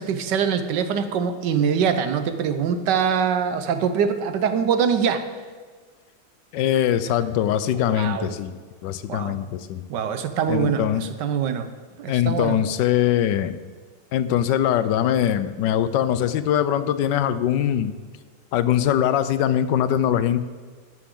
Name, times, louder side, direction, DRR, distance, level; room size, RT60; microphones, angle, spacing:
voice 1, 0.0-5.2 7.7-8.3 9.1-9.4 9.9-11.7 12.0-12.6, right 7 dB, 75° right, 9 dB, 1.5 m, -23 dB
voice 2, 6.5-9.8 10.5-11.1 12.1-13.6 14.1-18.0 18.5-20.4, left 10 dB, 80° left, 13 dB, 1.3 m, -22 dB
14.0 x 11.0 x 3.7 m, 1.5 s
omnidirectional pair, 1.9 m